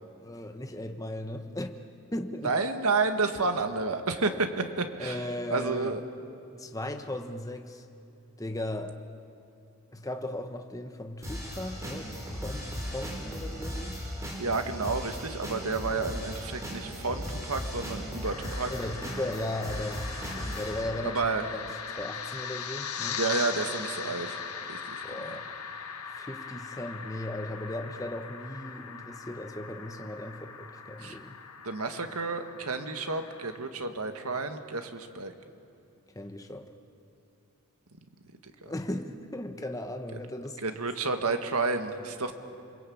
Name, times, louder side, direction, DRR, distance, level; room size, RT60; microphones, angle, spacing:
voice 1, 0.2-1.8 2.1-2.5 4.3-4.4 5.0-6.0 6.6-7.8 8.4-9.0 9.9-14.0 15.8-15.9 18.7-20.1 20.5-21.6 22.0-23.2 25.0-25.6 26.2-31.4 36.1-36.7 38.6-40.6, left 1 dB, 15° left, 6 dB, 1.0 m, -37 dB
voice 2, 2.4-6.0 14.4-18.7 21.0-21.5 23.2-24.4 24.7-25.4 31.0-31.2 31.6-35.3 38.4-38.7 40.6-42.3, right 3 dB, 85° right, 7 dB, 1.8 m, -30 dB
sound 1, 11.2-20.8, equal, 15° right, 4.8 m, -37 dB
sound 2, 18.2-33.6, left 6 dB, 90° left, 1.8 m, -40 dB
28.0 x 22.5 x 8.7 m, 2.7 s
head